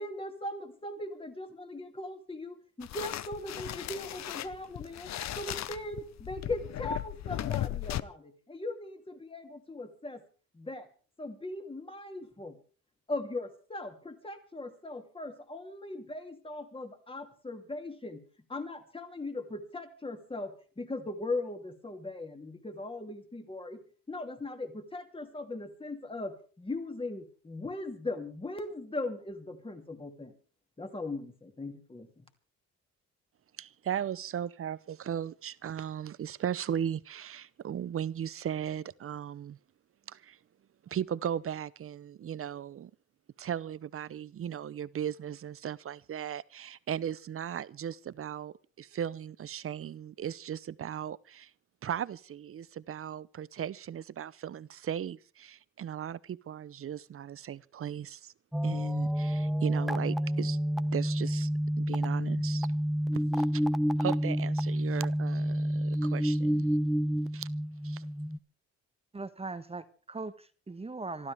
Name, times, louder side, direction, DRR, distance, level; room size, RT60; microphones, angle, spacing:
voice 1, 0.0-10.2 10.5-10.9 11.2-12.6 13.1-18.2 18.5-23.8 24.1-30.4 30.8-32.2, left 2 dB, 20° left, 2.7 m, -39 dB
sound 1, 2.8-8.0, left 13 dB, 60° left, 0.7 m, -36 dB
voice 2, 33.6-39.6 40.1-40.4 40.8-42.9 43.4-51.5 51.8-58.3 58.6-60.6 60.9-61.5 61.8-62.7 63.1-63.6 64.0-66.6 67.3-67.5 67.8-68.1, right 9 dB, 45° right, 0.8 m, -37 dB
sound 2, 58.5-68.4, equal, ahead, 0.8 m, -29 dB
voice 3, 69.1-71.3, right 3 dB, 20° right, 1.2 m, -40 dB
26.5 x 13.0 x 3.5 m
cardioid pair, 90°, 30 cm